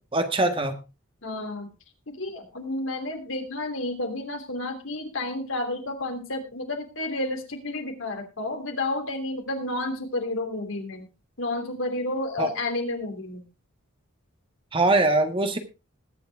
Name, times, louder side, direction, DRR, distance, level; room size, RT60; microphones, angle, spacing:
voice 1, 0.1-0.8 12.4-12.5 14.7-15.6, right 2 dB, 25° right, 7 dB, 1.5 m, -22 dB
voice 2, 1.2-1.7 2.1-11.1 11.4-13.4, left 2 dB, 65° left, 4 dB, 3.0 m, -31 dB
21.0 x 7.8 x 3.5 m, 0.28 s
head